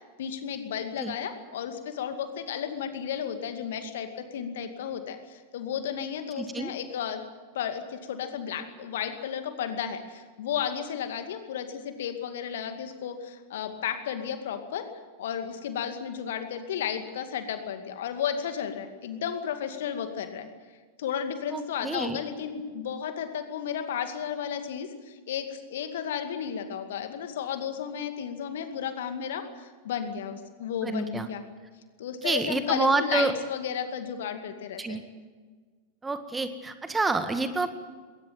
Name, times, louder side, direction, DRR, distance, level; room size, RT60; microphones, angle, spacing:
voice 1, 0.2-7.2 7.5-14.9 15.2-20.5 21.0-31.4 32.0-35.0, left 8 dB, 60° left, 8 dB, 2.3 m, -33 dB
voice 2, 6.4-6.7 21.5-22.2 30.8-31.3 32.2-33.3 34.8-35.0 36.0-37.7, right 3 dB, 10° right, 10 dB, 1.7 m, -28 dB
21.0 x 18.5 x 9.2 m, 1.5 s
figure-of-eight pair, 90°, 0 cm